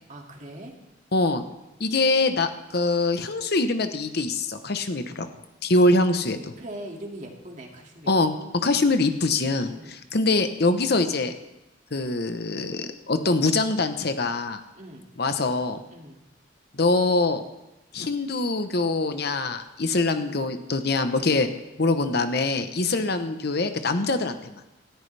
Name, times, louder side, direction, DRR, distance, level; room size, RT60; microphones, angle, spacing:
voice 1, 0.1-0.7 6.6-8.3 8.7-8.9 9.7-10.0 14.7-15.1 15.9-16.2 22.8-23.1, right 1 dB, 40° right, 0 dB, 2.3 m, -41 dB
voice 2, 1.1-1.4 1.8-5.3 5.6-6.5 8.1-8.4 8.6-11.3 11.9-14.6 15.2-15.8 16.8-17.4 17.9-21.5 21.8-24.6, left 2 dB, 60° left, 8 dB, 1.0 m, -24 dB
19.0 x 13.5 x 3.4 m, 0.96 s
head